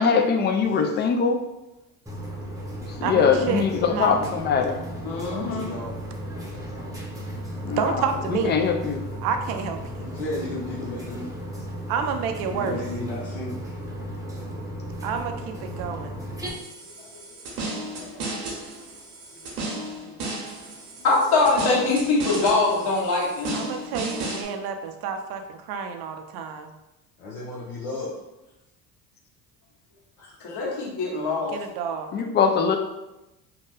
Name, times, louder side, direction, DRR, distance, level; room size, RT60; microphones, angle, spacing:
voice 1, 0.0-1.4 3.0-4.8 7.6-8.0 8.3-9.0 32.1-32.8, left 6 dB, 25° left, 5 dB, 0.3 m, -22 dB
voice 2, 0.6-0.9 5.3-6.0 10.0-11.3 12.5-13.6 27.2-28.1 30.2-30.7, left 2 dB, 80° left, -6 dB, 0.8 m, -34 dB
sound 1, 2.1-16.5, equal, 10° right, 0.7 m, -35 dB
voice 3, 3.0-4.2 7.8-8.5 9.2-10.0 11.9-12.8 15.0-16.1 23.5-26.7 31.5-32.1, right 6 dB, 60° right, 6 dB, 0.5 m, -29 dB
voice 4, 5.0-5.7 21.0-23.6 30.4-31.5, left 3 dB, 55° left, -3 dB, 1.2 m, -23 dB
sound 2, 16.5-24.5, right 2 dB, 85° right, 0.9 m, -34 dB
2.8 x 2.1 x 3.2 m, 0.95 s
hypercardioid pair, 75°, 44 cm